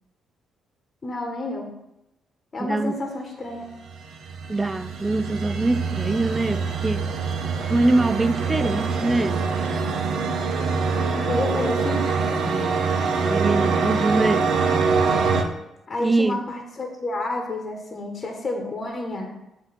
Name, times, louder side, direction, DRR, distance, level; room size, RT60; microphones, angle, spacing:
voice 1, 1.0-1.7 2.5-3.6 11.1-12.1 15.9-19.3, left 2 dB, 35° left, 1.1 m, -29 dB
voice 2, 2.7-3.0 4.5-7.1 7.7-9.5 12.5-12.9 13.2-14.6 16.0-16.5, right 2 dB, 20° right, 0.3 m, -23 dB
sound 1, 3.9-15.4, right 5 dB, 75° right, 0.9 m, -24 dB
7.6 x 2.9 x 5.7 m
cardioid pair, 90°, 0 cm